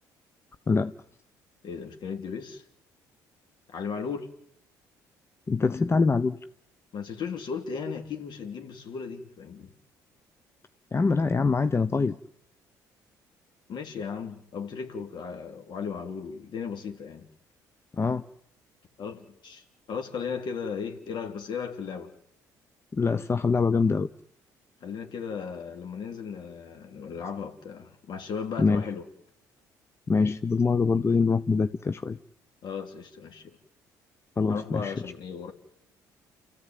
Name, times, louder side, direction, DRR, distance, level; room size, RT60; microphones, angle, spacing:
voice 1, 1.6-2.6 3.7-4.3 6.9-9.7 13.7-17.3 19.0-22.1 24.8-29.1 32.6-33.6 34.5-35.5, left 6 dB, 60° left, 3.6 m, -36 dB
voice 2, 5.5-6.4 10.9-12.2 18.0-18.2 22.9-24.1 28.6-28.9 30.1-32.2 34.4-34.9, left 4 dB, 30° left, 0.9 m, -24 dB
29.0 x 15.0 x 9.4 m
hypercardioid pair, 60°, 9 cm